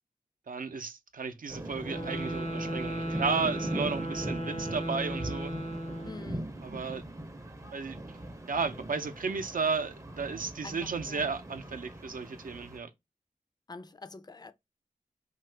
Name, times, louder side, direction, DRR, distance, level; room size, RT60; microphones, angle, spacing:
voice 1, 0.5-5.5 6.6-7.0 7.7-8.2 8.5-12.9, right 5 dB, 75° right, 0.5 m, -33 dB
sound 1, 1.5-12.8, right 1 dB, 20° right, 0.5 m, -40 dB
sound 2, 1.8-6.4, equal, 60° left, 0.7 m, -36 dB
voice 2, 6.0-6.5 10.6-11.3 13.7-14.5, left 3 dB, 30° left, 0.4 m, -46 dB
2.8 x 2.3 x 3.3 m
wide cardioid pair, 55°, 14 cm